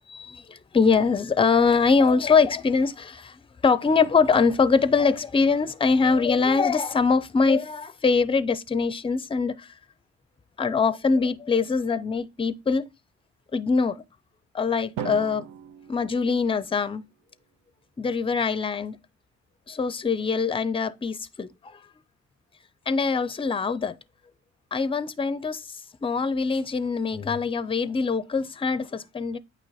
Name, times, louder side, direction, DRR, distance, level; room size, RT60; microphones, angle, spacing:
voice 1, 0.2-9.7 10.6-12.8 13.5-14.0 14.5-15.5 15.9-17.0 18.0-19.0 19.7-21.5 22.9-24.0 24.7-25.6 26.0-29.4, left 5 dB, 20° left, 0.5 m, -23 dB
Drum, 15.0-17.1, right 8 dB, 85° right, 0.7 m, -38 dB
8.8 x 3.0 x 4.2 m
cardioid pair, 90°, 30 cm